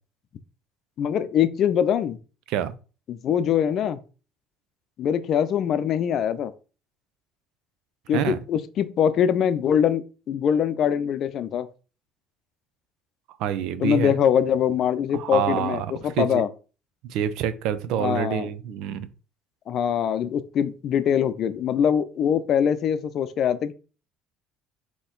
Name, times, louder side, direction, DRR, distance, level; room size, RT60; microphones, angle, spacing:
voice 1, 1.0-2.2 3.1-4.0 5.0-6.5 8.1-11.7 13.8-16.5 18.0-18.5 19.7-23.7, left 8 dB, 55° left, 0.5 m, -23 dB
voice 2, 13.4-14.1 15.1-15.9 16.2-16.4 17.1-19.1, right 9 dB, 75° right, 0.5 m, -26 dB
4.2 x 3.0 x 3.8 m
supercardioid pair, 90°, 0 cm